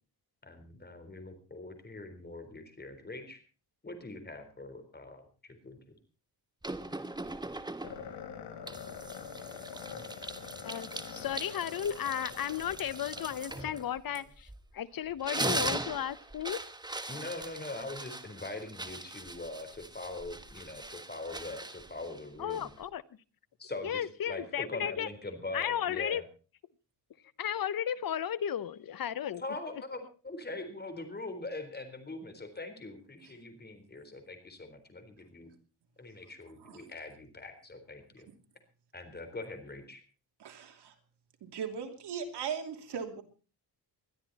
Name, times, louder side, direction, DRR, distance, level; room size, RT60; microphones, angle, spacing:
voice 1, 0.4-3.4 3.8-6.0 17.1-22.7 23.6-26.2 29.4-35.5 36.0-38.3 38.9-40.0, left 2 dB, 25° left, 8 dB, 4.0 m, -42 dB
sound 1, 6.6-8.2 8.7-14.7 15.1-22.9, right 2 dB, 10° right, 1.3 m, -40 dB
sound 2, 7.8-14.3, left 7 dB, 90° left, 3.9 m, -45 dB
voice 2, 10.6-14.5 14.7-16.6 22.4-23.0 23.8-25.1 25.5-26.2 27.4-29.4, left 9 dB, 55° left, 17 dB, 0.9 m, -34 dB
voice 3, 40.4-40.9 41.4-43.2, right 7 dB, 75° right, 5 dB, 3.0 m, -38 dB
21.0 x 13.0 x 4.2 m, 0.35 s
cardioid pair, 105°, 41 cm